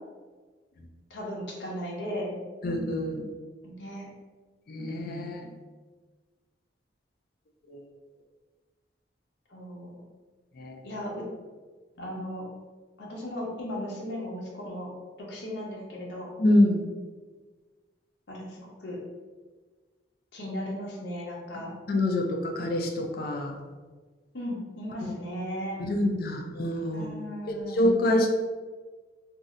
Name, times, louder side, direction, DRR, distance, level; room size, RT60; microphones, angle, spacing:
voice 1, 1.1-2.4 3.6-4.1 9.5-10.0 10.8-11.2 12.0-12.4 13.0-14.9 15.2-16.3 18.3-19.0 20.3-21.7 24.3-25.8 26.9-28.0, equal, 70° left, -3 dB, 0.8 m, -36 dB
voice 2, 2.6-3.3 4.7-5.5 7.7-7.8 10.6-10.8 12.0-12.1 16.4-16.8 21.5-23.6 25.8-27.1 27.5-28.3, left 1 dB, 55° left, 2 dB, 0.4 m, -26 dB
2.7 x 2.1 x 3.6 m, 1.4 s
head